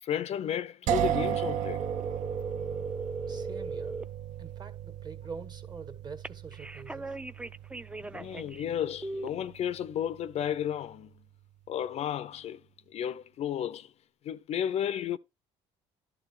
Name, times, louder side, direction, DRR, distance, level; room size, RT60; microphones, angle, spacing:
voice 1, 0.0-1.8 8.1-11.1 11.7-13.9 14.2-15.2, left 9 dB, 55° left, 0.4 m, -33 dB
sound 1, 0.9-10.6, right 11 dB, 65° right, 0.6 m, -36 dB
sound 2, 1.8-4.1 6.2-8.6 9.0-9.3, right 2 dB, 10° right, 0.4 m, -38 dB
voice 2, 3.3-4.0 4.4-7.2, right 5 dB, 30° right, 1.6 m, -45 dB
11.0 x 3.8 x 6.0 m
supercardioid pair, 85°, 13 cm